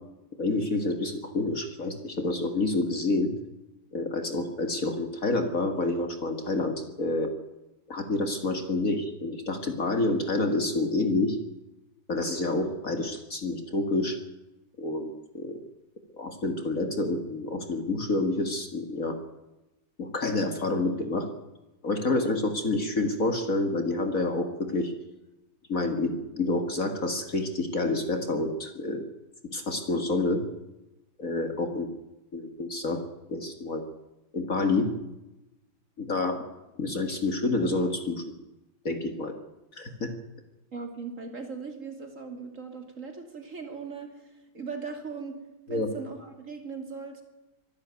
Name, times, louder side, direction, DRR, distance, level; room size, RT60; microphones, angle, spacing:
voice 1, 0.4-3.3 3.9-7.3 7.9-11.4 12.1-14.2 14.8-15.6 16.1-19.2 20.0-21.3 21.8-24.9 25.7-29.0 29.5-30.4 31.2-31.9 32.3-33.0 33.3-33.8 34.3-34.9 36.0-36.4 36.8-38.2 38.8-39.3 39.7-40.1 45.7-45.9, left 2 dB, 40° left, 6 dB, 2.1 m, -28 dB
voice 2, 40.7-45.4 45.7-47.2, right 5 dB, 40° right, 4 dB, 3.1 m, -39 dB
23.5 x 12.0 x 9.5 m, 1.0 s
omnidirectional pair, 2.2 m